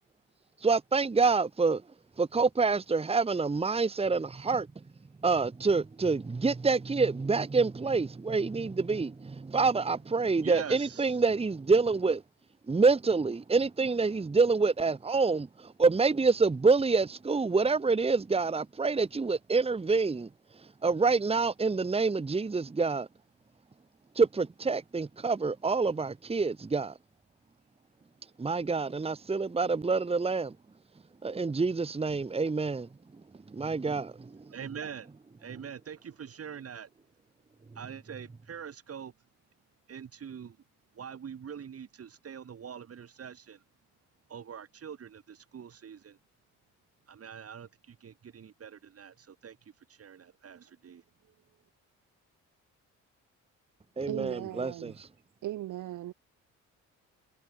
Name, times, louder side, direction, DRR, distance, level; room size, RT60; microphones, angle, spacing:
voice 1, 0.6-1.8 2.2-4.7 5.2-12.2 12.7-23.1 24.1-27.0 28.4-30.6 31.2-32.9 33.5-34.5 54.0-55.1, right 4 dB, 20° right, 1.3 m, -27 dB
voice 2, 10.4-11.1 34.5-35.1 35.4-36.9 37.7-39.1 39.9-40.6 40.9-43.6 44.3-46.2 47.1-49.6 49.9-51.0, right 7 dB, 50° right, 6.7 m, -43 dB
voice 3, 54.1-55.0 55.4-56.1, right 14 dB, 80° right, 5.4 m, -37 dB
cardioid pair, 90°, 30 cm